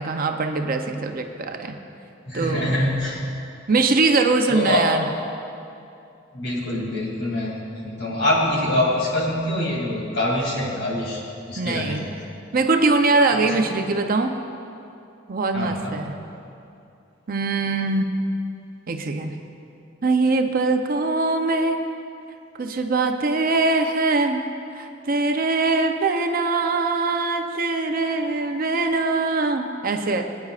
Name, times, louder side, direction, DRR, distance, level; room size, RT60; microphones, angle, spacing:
voice 1, 0.0-1.8 2.3-2.7 3.7-5.0 11.6-12.1 12.5-14.3 15.3-16.1 17.3-18.2 18.9-19.4 20.0-21.9 22.6-24.4 24.7-30.2, right 3 dB, 45° right, 5 dB, 0.6 m, -22 dB
voice 2, 2.3-3.2 4.5-4.9 6.3-11.2 11.5-12.0 13.3-13.6 15.5-16.0, left 1 dB, 65° left, -3 dB, 2.7 m, -24 dB
21.5 x 9.4 x 2.5 m, 2.6 s
head